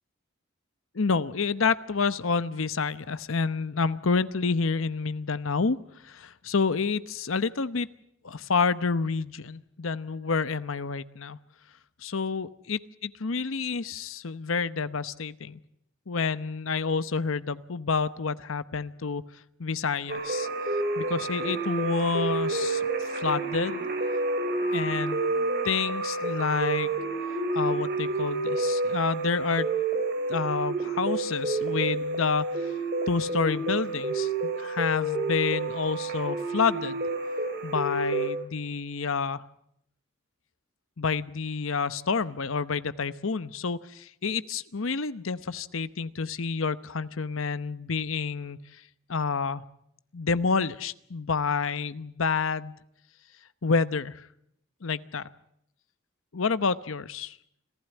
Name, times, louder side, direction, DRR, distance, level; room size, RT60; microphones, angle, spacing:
voice 1, 0.9-5.8 6.0-7.9 8.2-11.4 12.0-15.6 16.1-19.2 19.6-20.5 21.0-23.8 24.7-25.3 25.6-26.9 27.5-29.7 30.3-32.7 33.1-37.0 37.6-39.4 41.0-48.6 49.1-49.6 50.1-52.8 53.6-54.3 54.8-55.3 56.3-57.4, left 5 dB, 75° left, 14 dB, 0.9 m, -29 dB
sound 1, 20.1-38.3, right 2 dB, 50° right, 4.6 m, -29 dB
26.5 x 15.5 x 9.0 m, 0.77 s
head